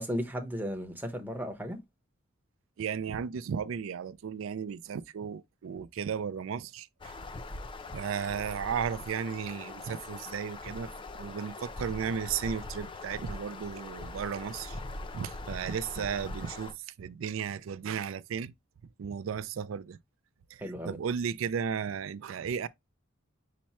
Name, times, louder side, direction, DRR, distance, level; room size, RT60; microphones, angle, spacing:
voice 1, 0.0-1.8 20.6-21.0, equal, 10° right, 0.8 m, -35 dB
voice 2, 2.8-7.1 7.9-10.9 11.2-14.8 15.1-18.5 19.0-20.0 20.5-22.7, right 7 dB, 80° right, 0.4 m, -35 dB
sound 1, 7.0-16.7, left 2 dB, 25° left, 0.4 m, -42 dB
5.9 x 2.1 x 4.1 m
head